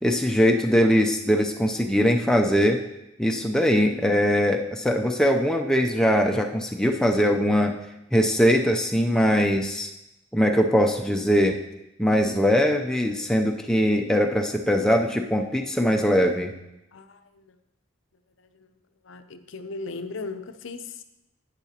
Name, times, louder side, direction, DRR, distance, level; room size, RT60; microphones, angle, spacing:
voice 1, 0.0-2.8 3.2-7.8 8.1-9.9 10.3-11.6 12.0-16.5, equal, 5° left, 2 dB, 0.4 m, -21 dB
voice 2, 19.1-21.0, left 3 dB, 65° left, 8 dB, 0.6 m, -37 dB
12.0 x 9.0 x 2.8 m, 0.93 s
head